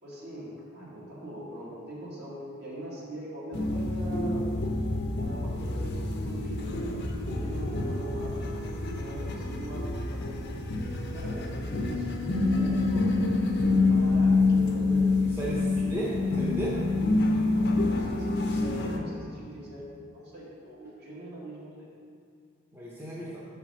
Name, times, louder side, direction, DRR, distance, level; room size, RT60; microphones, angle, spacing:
voice 1, 0.0-4.5 5.2-10.6 11.1-13.1 13.6-15.1 15.6-16.0 17.5-19.8 20.1-21.9, right 1 dB, 55° right, -6 dB, 2.2 m, -42 dB
sound 1, 3.5-19.0, left 3 dB, 55° left, 0.8 m, -27 dB
voice 2, 15.4-16.8 22.7-23.4, right 1 dB, 10° right, -6 dB, 1.0 m, -34 dB
6.0 x 5.8 x 6.1 m, 2.3 s
head